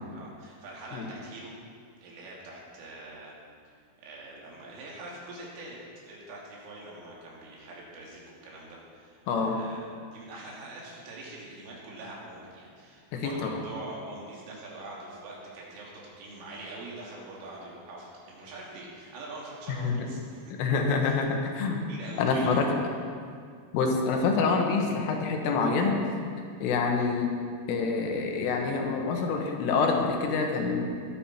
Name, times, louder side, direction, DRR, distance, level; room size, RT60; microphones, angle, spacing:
voice 1, 0.1-1.6 2.0-3.3 3.7-5.8 6.1-20.4 21.0-21.2 21.9-22.7 27.0-27.1, right 2 dB, 75° right, -4 dB, 5.1 m, -44 dB
voice 2, 9.3-9.6 13.1-13.6 19.7-20.0 20.6-21.8 22.2-22.7 23.7-26.0 26.6-27.4 27.7-30.9, left 4 dB, 80° left, 2 dB, 3.9 m, -26 dB
20.0 x 10.0 x 4.4 m, 2.1 s
omnidirectional pair, 5.8 m